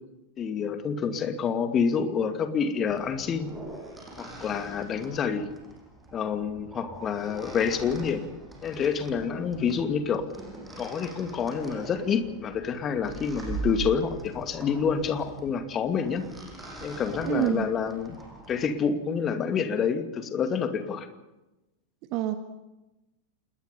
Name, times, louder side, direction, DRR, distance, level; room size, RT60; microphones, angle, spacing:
voice 1, 0.4-3.5 4.2-5.5 6.1-8.3 8.6-10.2 10.8-16.2 16.8-18.2 18.5-21.1, left 6 dB, 25° left, 7 dB, 2.5 m, -28 dB
sound 1, 2.9-18.7, right 4 dB, 5° right, 7.4 m, -42 dB
voice 2, 17.2-17.7 22.1-22.4, right 13 dB, 40° right, 8 dB, 1.5 m, -26 dB
27.5 x 21.0 x 5.5 m, 0.99 s
figure-of-eight pair, 90°, 0 cm